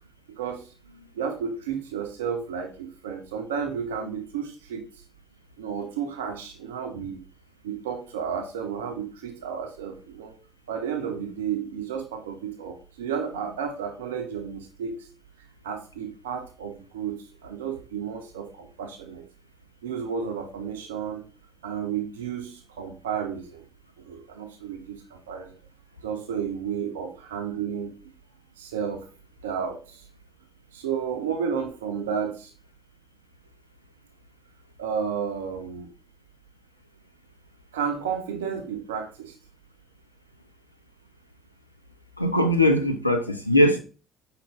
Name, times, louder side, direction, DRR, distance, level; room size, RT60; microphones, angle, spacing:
voice 1, 0.4-0.7 1.1-4.9 5.6-7.2 7.6-10.4 10.7-15.1 15.6-19.3 19.8-21.2 21.6-23.7 24.0-25.5 26.0-28.0 28.6-29.1 29.4-30.0 30.7-32.5 34.8-35.9 37.7-39.3, right 7 dB, 75° right, 0.5 m, -32 dB
voice 2, 42.2-43.8, left 1 dB, 90° left, 0.4 m, -20 dB
5.2 x 2.1 x 3.4 m
figure-of-eight pair, 55°, 0 cm